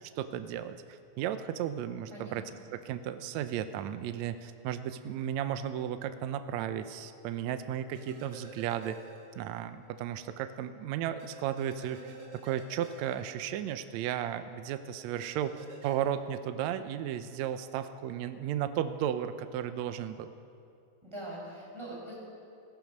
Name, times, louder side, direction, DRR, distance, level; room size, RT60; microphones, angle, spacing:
voice 1, 0.0-2.4 2.7-9.0 9.4-20.3, right 10 dB, 75° right, 10 dB, 1.8 m, -34 dB
sound 1, 7.9-9.6 9.9-10.0 11.2-14.0 15.2-15.9, right 3 dB, 45° right, 2.9 m, -50 dB
voice 2, 21.0-22.1, right 1 dB, 10° right, -5 dB, 5.2 m, -42 dB
19.0 x 14.0 x 5.3 m, 2.4 s
omnidirectional pair, 3.7 m